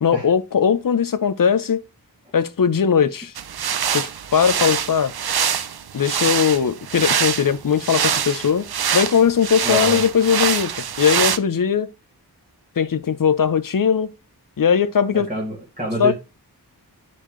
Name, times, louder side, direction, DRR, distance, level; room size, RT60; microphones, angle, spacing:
voice 1, 0.0-1.8 2.3-3.3 3.9-5.1 5.9-8.6 8.9-10.7 11.0-11.9 12.8-14.1 14.6-15.3 16.0-16.1, left 7 dB, 55° left, 0.7 m, -19 dB
sound 1, 3.4-11.4, right 8 dB, 65° right, 0.6 m, -24 dB
voice 2, 9.6-10.0 15.1-16.1, right 1 dB, 20° right, 2.4 m, -27 dB
10.0 x 4.3 x 3.2 m
wide cardioid pair, 65°, 40 cm